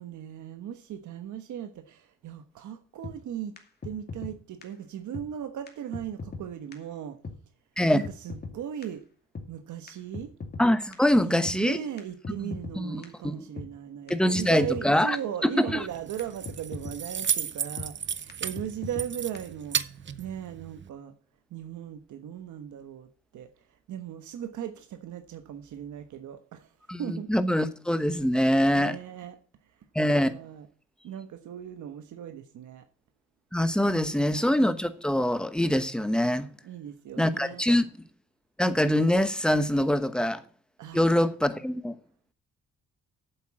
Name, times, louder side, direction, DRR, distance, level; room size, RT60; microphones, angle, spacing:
voice 1, 0.0-3.5 3.8-7.2 7.9-9.0 9.5-10.3 11.1-21.1 21.5-23.5 23.9-26.7 27.0-27.3 28.7-29.4 30.1-30.7 31.0-32.8 33.8-34.4 36.6-37.6 40.8-41.3, right 10 dB, 75° right, 1.3 m, -38 dB
sound 1, 3.0-3.2 3.6-3.7 3.8-4.3 4.6-4.7 5.1-5.3 5.7-5.8 5.9-6.4 6.7-6.8 7.2-7.4 7.8-7.9 8.0-8.5 8.8-8.9 9.3-9.5 9.9-10.7 10.9-11.0 11.5-11.6 12.0-12.1 12.2-12.8 13.0-13.1 13.6-13.7 14.1-14.2 14.3-14.9 15.1-15.2 15.7-15.8 16.2-16.3 16.5-17.0 17.2-17.3 17.8-17.9 18.3-18.4 18.6-19.1 19.3-19.4, left 4 dB, 35° left, 2.5 m, -38 dB
voice 2, 10.6-11.8 12.4-13.5 14.1-15.2 15.4-15.8 26.9-29.0 29.9-30.3 33.5-36.5 37.2-37.9 38.6-40.4 40.9-41.9, left 1 dB, 5° left, 1.1 m, -24 dB
Keys jangling, 15.8-20.9, right 8 dB, 40° right, 0.8 m, -34 dB
8.5 x 7.9 x 7.6 m
cardioid pair, 90°, 30 cm